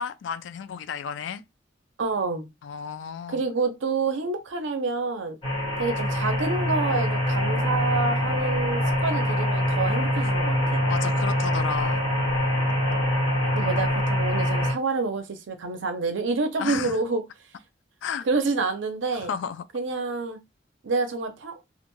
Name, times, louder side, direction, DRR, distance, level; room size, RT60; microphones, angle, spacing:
voice 1, 0.0-1.4 2.6-3.4 10.9-12.0 13.6-13.7 16.6-17.0 18.0-18.3 19.1-19.6, left 7 dB, 70° left, 0.3 m, -32 dB
voice 2, 2.0-2.5 3.3-5.4 5.8-10.8 13.5-17.2 18.3-19.3 19.7-20.4 20.8-21.5, right 3 dB, 75° right, 0.6 m, -28 dB
sound 1, 5.4-14.7, equal, 25° left, 1.1 m, -24 dB
2.4 x 2.2 x 3.0 m
head